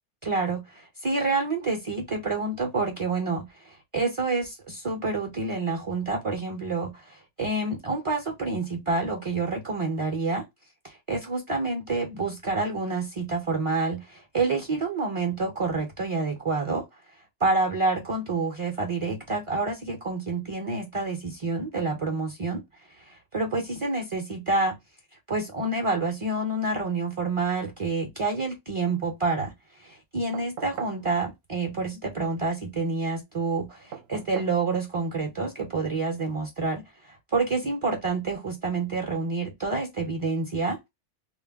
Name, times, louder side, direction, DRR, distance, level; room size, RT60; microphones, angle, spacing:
voice 1, 0.2-10.5 10.8-16.8 17.4-22.6 23.1-24.8 25.3-29.5 29.8-40.8, right 3 dB, 40° right, 0.5 m, -28 dB
sound 1, 30.3-31.1 33.9-34.6 36.2-36.3, right 7 dB, 65° right, 0.8 m, -39 dB
2.2 x 2.1 x 3.3 m
omnidirectional pair, 1.2 m